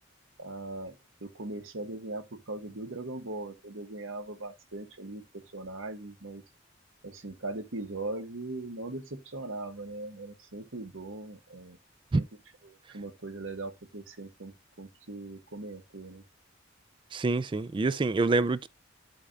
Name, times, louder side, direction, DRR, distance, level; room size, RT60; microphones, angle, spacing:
voice 1, 0.4-6.4 7.0-11.8 12.1-12.2 12.6-16.2, right 2 dB, 85° right, 1.3 m, -40 dB
voice 2, 17.1-18.7, right 3 dB, 25° right, 0.3 m, -26 dB
12.5 x 5.1 x 2.5 m
head